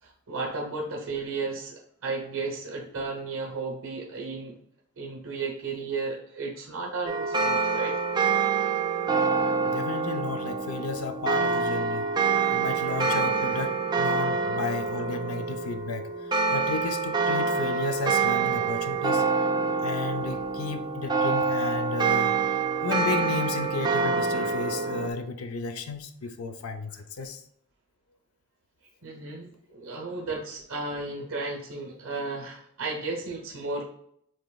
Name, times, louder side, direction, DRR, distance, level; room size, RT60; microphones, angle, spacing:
voice 1, 0.0-4.6 5.0-7.9 8.4-8.7 29.0-33.8, right 3 dB, 75° right, 0.9 m, -34 dB
sound 1, 7.1-25.1, right 4 dB, 20° right, 0.5 m, -26 dB
voice 2, 9.7-19.3 19.8-27.4, left 4 dB, 80° left, 0.5 m, -33 dB
7.7 x 3.0 x 2.3 m
head